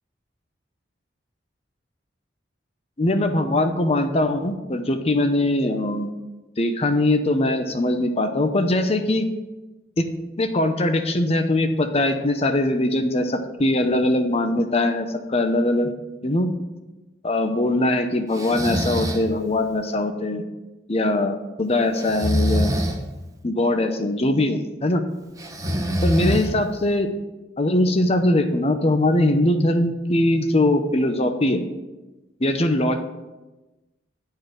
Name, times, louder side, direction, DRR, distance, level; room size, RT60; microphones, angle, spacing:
voice 1, 3.0-6.1 6.6-9.3 10.0-10.1 10.4-15.9 16.2-16.5 17.2-20.4 20.9-22.8 23.4-25.0 26.0-27.1 27.6-31.6 32.4-33.0, left 1 dB, 35° left, 7 dB, 0.8 m, -21 dB
Breathing, 18.3-19.3 22.0-23.0 25.4-26.8, equal, 20° right, 1.0 m, -24 dB
10.5 x 4.7 x 6.4 m, 1.1 s
head